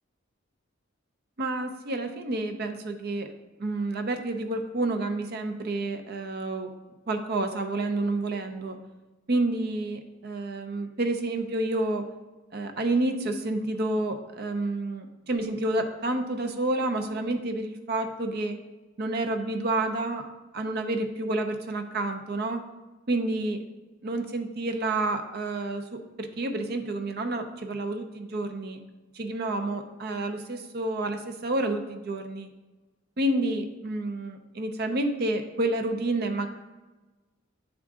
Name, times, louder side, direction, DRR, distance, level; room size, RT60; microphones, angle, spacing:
voice 1, 1.4-3.3 3.6-6.7 7.1-8.8 9.3-12.1 12.5-18.6 19.0-20.3 20.5-22.6 23.1-23.6 24.0-28.8 29.1-32.5 33.2-36.5, right 2 dB, 55° right, 6 dB, 0.6 m, -29 dB
8.6 x 3.7 x 3.6 m, 1.2 s
head